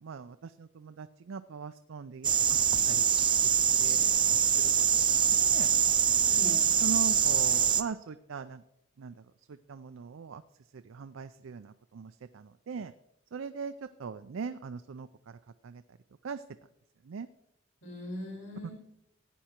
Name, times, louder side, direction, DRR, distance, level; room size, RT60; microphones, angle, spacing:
voice 1, 0.0-2.3 2.9-3.0 3.8-4.2 4.6-5.7 6.4-8.6 9.0-9.1 9.5-10.4 10.7-12.9 13.3-15.4 15.6-15.8 16.2-16.4 17.0-17.3 18.6-18.7, right 5 dB, 80° right, 11 dB, 0.4 m, -40 dB
sound 1, 2.2-7.8, right 8 dB, 25° right, 0.5 m, -24 dB
voice 2, 6.2-6.6 17.8-18.7, left 1 dB, 65° left, -3 dB, 5.0 m, -40 dB
14.5 x 9.3 x 4.4 m, 0.78 s
head